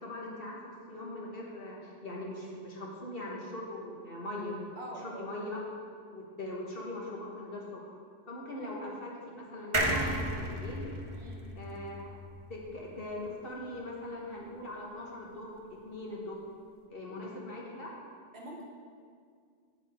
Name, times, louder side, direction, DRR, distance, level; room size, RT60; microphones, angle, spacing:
voice 1, 0.0-4.6 5.0-5.6 6.1-7.6 8.3-10.8 11.5-12.2 12.5-16.4 16.9-17.9, left 1 dB, 55° left, -3 dB, 1.6 m, -41 dB
voice 2, 4.8-5.3 8.6-8.7 11.1-11.5 18.3-18.6, right 1 dB, 65° right, -2 dB, 1.6 m, -45 dB
sound 1, 9.7-13.2 13.6-13.7 13.9-14.0, right 1 dB, 30° right, 0.7 m, -34 dB
8.9 x 8.0 x 3.7 m, 2.1 s
omnidirectional pair, 1.2 m